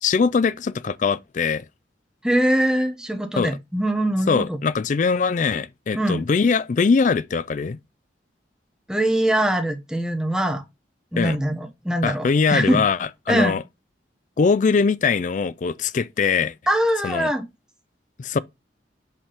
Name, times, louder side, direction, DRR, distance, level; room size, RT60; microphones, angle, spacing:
voice 1, 0.0-1.6 3.4-3.5 4.3-7.8 11.2-11.4 12.0-13.0 13.3-13.6 14.4-16.5 17.0-17.3 18.2-18.4, left 5 dB, 45° left, 0.4 m, -21 dB
voice 2, 2.2-4.6 5.9-6.2 8.9-10.6 11.1-12.8 13.3-13.6 16.7-17.4, right 1 dB, 5° right, 0.9 m, -22 dB
5.5 x 3.5 x 5.6 m
head